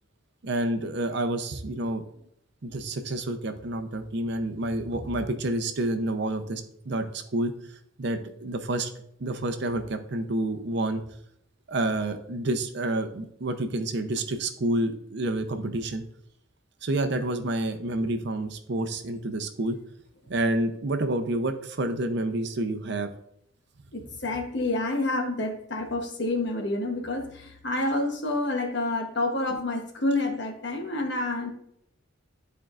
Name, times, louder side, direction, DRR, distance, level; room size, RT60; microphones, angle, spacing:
voice 1, 0.4-2.0 2.6-8.9 9.2-11.0 11.7-16.0 16.8-19.8 20.3-23.1, right 1 dB, 55° right, 7 dB, 0.6 m, -29 dB
voice 2, 23.9-31.5, left 2 dB, 55° left, 4 dB, 1.0 m, -28 dB
11.0 x 4.5 x 2.4 m, 0.73 s
head